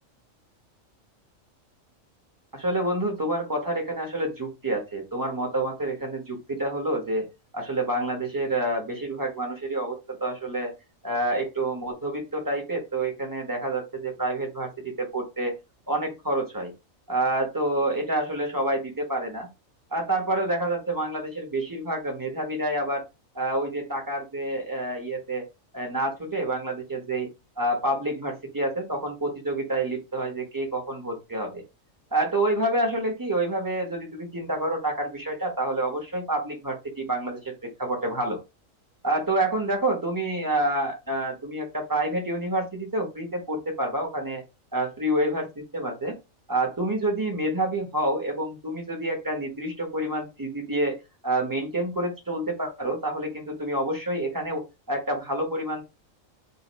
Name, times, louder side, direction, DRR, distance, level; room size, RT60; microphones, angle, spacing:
voice 1, 2.5-7.2 7.5-10.7 11.0-15.5 15.9-16.7 17.1-19.5 19.9-23.0 23.3-25.5 25.7-27.3 27.6-31.6 32.1-38.4 39.0-44.4 44.7-46.2 46.5-51.0 51.2-54.6 54.9-55.8, right 1 dB, 20° right, 2 dB, 0.8 m, -28 dB
2.8 x 2.6 x 4.0 m, 0.25 s
omnidirectional pair, 1.4 m